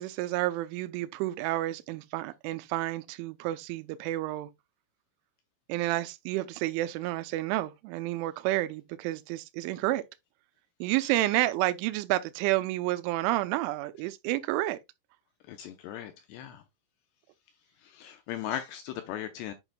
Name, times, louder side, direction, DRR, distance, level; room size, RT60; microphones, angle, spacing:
voice 1, 0.0-4.5 5.7-10.0 10.8-14.8, right 16 dB, 85° right, 2.9 m, -30 dB
voice 2, 15.5-16.6 17.8-19.5, left 11 dB, 85° left, 2.4 m, -38 dB
9.0 x 5.8 x 2.2 m
omnidirectional pair, 5.7 m